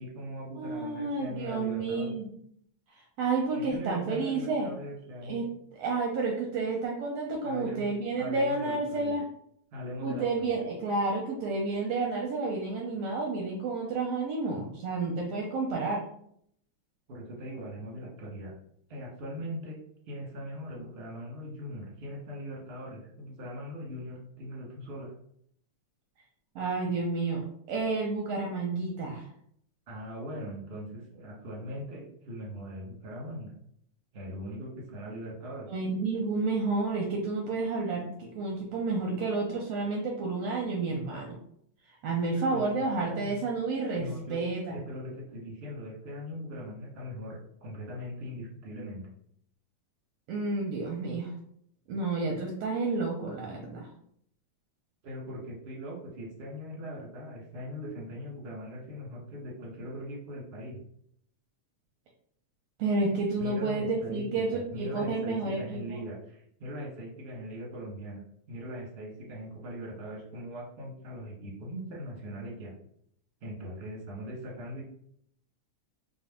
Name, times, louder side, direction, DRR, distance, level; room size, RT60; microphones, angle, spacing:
voice 1, 0.0-2.2 3.5-5.4 7.4-7.9 8.2-9.2 9.7-10.6 17.1-18.5 18.9-19.8 20.1-25.1 29.9-33.6 34.1-35.7 42.5-42.6 43.0-43.4 43.9-44.4 44.7-49.1 55.0-60.8 63.4-68.2 68.5-72.7 73.4-74.8, equal, 40° right, -4 dB, 0.8 m, -40 dB
voice 2, 0.5-2.3 2.9-4.7 5.2-9.2 10.0-16.0 26.5-27.4 27.7-29.2 35.7-41.4 42.0-44.8 50.3-51.3 51.9-53.9 62.8-66.0, right 3 dB, 80° right, 0 dB, 1.5 m, -30 dB
4.5 x 2.2 x 3.5 m, 0.68 s
omnidirectional pair, 3.3 m